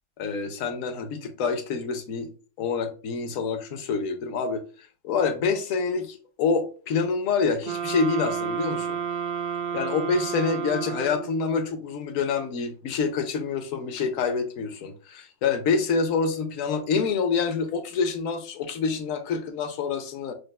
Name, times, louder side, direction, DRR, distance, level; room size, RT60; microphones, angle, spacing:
voice 1, 0.2-2.3 2.6-4.6 5.0-9.0 9.7-20.3, left 5 dB, 65° left, 0.9 m, -27 dB
sound 1, 7.6-11.5, right 7 dB, 85° right, 0.5 m, -31 dB
6.4 x 2.3 x 2.2 m
omnidirectional pair, 1.7 m